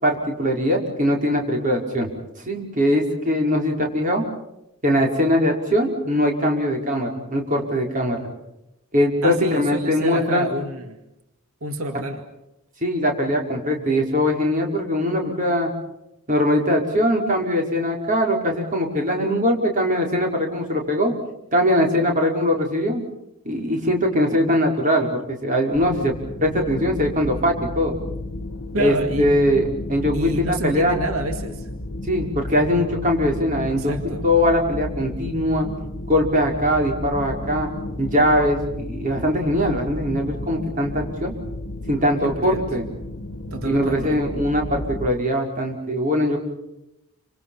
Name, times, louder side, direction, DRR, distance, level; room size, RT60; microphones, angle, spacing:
voice 1, 0.0-2.1 2.5-4.2 4.8-8.3 8.9-10.5 12.8-15.7 16.3-21.1 21.5-23.0 23.4-26.1 26.4-28.0 28.8-31.0 32.1-34.0 34.2-35.7 36.1-37.7 38.0-41.3 41.9-42.9 43.6-46.4, equal, 40° right, 1 dB, 5.5 m, -21 dB
voice 2, 9.2-11.0 11.6-12.2 28.7-29.4 30.1-31.7 33.8-34.2 42.2-42.6 43.5-44.2, right 2 dB, 85° right, 6 dB, 2.1 m, -28 dB
sound 1, 25.7-45.1, left 1 dB, 70° left, 1.4 m, -33 dB
29.5 x 26.5 x 5.7 m, 0.87 s
head